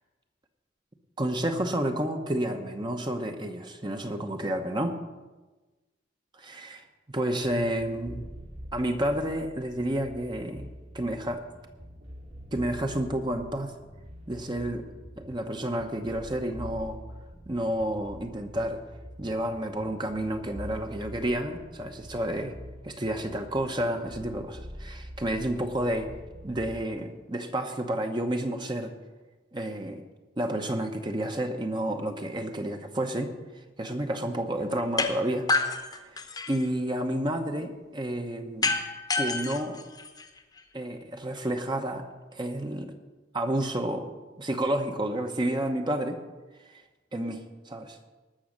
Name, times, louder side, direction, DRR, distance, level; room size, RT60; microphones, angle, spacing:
voice 1, 1.2-5.0 6.3-8.3 8.7-11.4 12.5-13.7 14.3-14.8 15.2-17.0 17.5-18.8 19.2-22.5 22.8-26.1 26.4-28.9 29.5-30.0 30.4-35.5 35.8-36.1 36.5-38.7 39.2-39.8 40.7-42.1 42.3-42.9 43.3-44.1 44.4-46.2 46.6-46.8 47.1-48.0, right 1 dB, 25° right, 5 dB, 0.9 m, -30 dB
sound 1, 7.8-26.7, equal, 80° right, 5.4 m, -45 dB
sound 2, 35.0-35.1 35.5-36.7 38.6-40.6, left 3 dB, 20° left, 0.9 m, -28 dB
19.0 x 6.4 x 6.4 m, 1.2 s
head